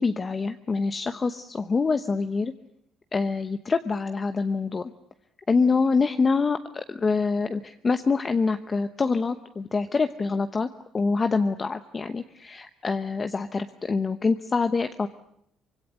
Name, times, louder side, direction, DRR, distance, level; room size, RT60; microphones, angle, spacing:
voice 1, 0.0-2.5 3.1-4.9 5.5-10.7 10.9-15.1, left 4 dB, 25° left, 8 dB, 0.9 m, -25 dB
25.0 x 23.5 x 8.3 m, 0.72 s
cardioid pair, 125°, 0 cm